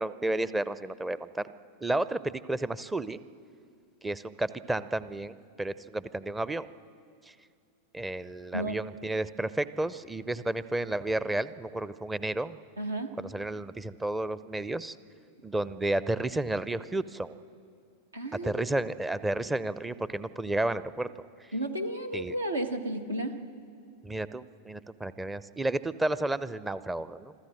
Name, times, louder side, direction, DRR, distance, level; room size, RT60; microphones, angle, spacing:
voice 1, 0.0-1.5 1.8-3.2 4.0-6.7 7.3-7.4 7.9-12.6 13.2-15.0 15.4-17.4 18.4-21.1 21.4-21.5 22.1-22.4 24.0-27.3, right 2 dB, 10° right, 16 dB, 0.6 m, -32 dB
voice 2, 12.8-13.1 18.1-18.6 21.5-23.3, right 1 dB, 80° right, 6 dB, 1.5 m, -32 dB
26.0 x 13.5 x 7.7 m, 2.4 s
figure-of-eight pair, 90°, 0 cm